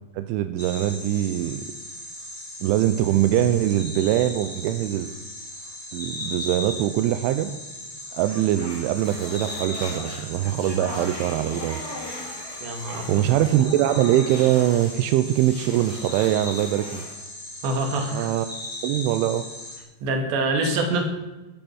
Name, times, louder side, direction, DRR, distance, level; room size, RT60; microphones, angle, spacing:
voice 1, 0.1-1.7 2.6-5.1 5.9-7.5 8.1-11.8 13.1-17.0 18.1-18.5 18.8-19.5, right 12 dB, 90° right, 10 dB, 3.2 m, -22 dB
sound 1, 0.6-19.8, left 1 dB, 10° left, 2.5 m, -38 dB
sound 2, 8.2-15.0 15.2-17.2, left 1 dB, 40° left, 7.4 m, -39 dB
voice 2, 12.6-13.2 17.6-18.3 20.0-21.0, right 2 dB, 70° right, 4 dB, 4.4 m, -25 dB
14.5 x 13.5 x 6.3 m, 1.1 s
omnidirectional pair, 5.4 m